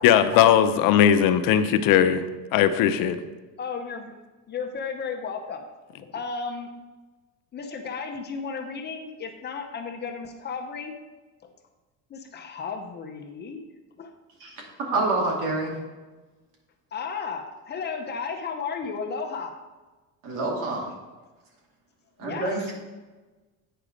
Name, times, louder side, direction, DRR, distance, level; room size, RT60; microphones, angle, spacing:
voice 1, 0.0-2.2 2.5-3.2, left 9 dB, 70° left, 10 dB, 0.7 m, -19 dB
voice 2, 3.6-4.1 4.5-5.6 6.0-6.7 7.5-10.9 11.4-11.5 12.1-13.6 14.0-14.1 16.9-19.5 22.2-22.6, left 5 dB, 30° left, 4 dB, 0.7 m, -34 dB
voice 3, 14.9-15.7 20.2-20.9 22.2-22.7, right 2 dB, 65° right, -1 dB, 2.4 m, -26 dB
9.0 x 5.0 x 5.0 m, 1.2 s
cardioid pair, 155°, 35 cm